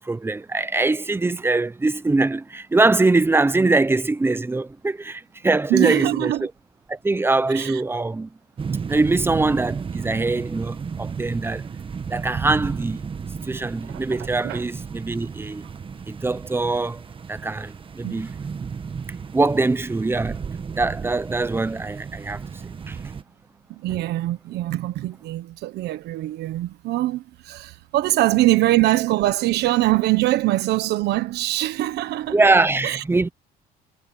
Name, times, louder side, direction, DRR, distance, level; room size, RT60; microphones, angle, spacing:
voice 1, 0.0-6.5 6.9-8.3 8.9-11.6 12.1-13.1 13.4-15.6 16.1-17.0 17.3-18.4 19.3-20.4 20.8-23.0 32.3-33.3, right 3 dB, 15° right, 0.9 m, -22 dB
voice 2, 5.7-6.5 7.5-7.8 13.9-14.2 14.4-14.6 18.0-18.2 23.7-32.4 32.8-33.0, right 16 dB, 80° right, 1.2 m, -23 dB
sound 1, 8.6-23.2, right 6 dB, 30° right, 1.5 m, -33 dB
cardioid pair, 110°, 17 cm